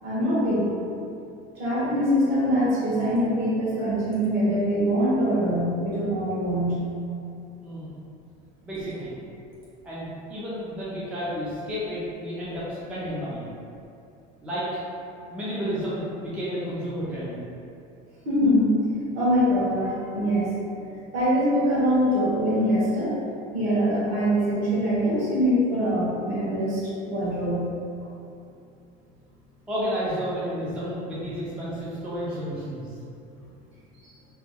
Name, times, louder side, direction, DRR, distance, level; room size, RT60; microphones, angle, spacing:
voice 1, 0.0-0.7 1.5-6.8 18.2-18.8 19.1-20.5 21.1-23.1 23.5-27.7 34.0-34.1, equal, 55° right, -8 dB, 1.3 m, -23 dB
voice 2, 8.6-9.1 9.8-13.5 14.4-14.8 15.3-17.4 29.7-32.9, equal, 5° right, -10 dB, 0.4 m, -31 dB
3.0 x 2.1 x 3.5 m, 2.6 s
cardioid pair, 170°, 19 cm